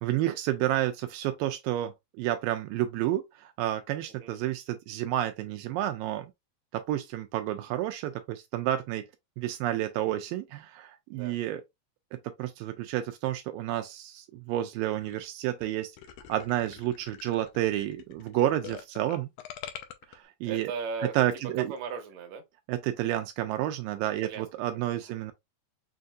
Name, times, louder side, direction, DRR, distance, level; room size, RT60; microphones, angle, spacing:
voice 1, 0.0-6.3 6.7-9.1 9.4-11.6 12.1-15.9 16.3-19.3 20.1-20.7 21.1-21.7 22.7-25.3, right 13 dB, 85° right, 2.2 m, -30 dB
sound 1, 15.0-15.3 15.6-15.7 16.0-20.2, left 10 dB, 80° left, 1.8 m, -44 dB
voice 2, 20.4-21.1 21.7-22.4 24.2-24.8, right 5 dB, 65° right, 2.0 m, -37 dB
6.4 x 2.6 x 2.3 m
omnidirectional pair, 4.0 m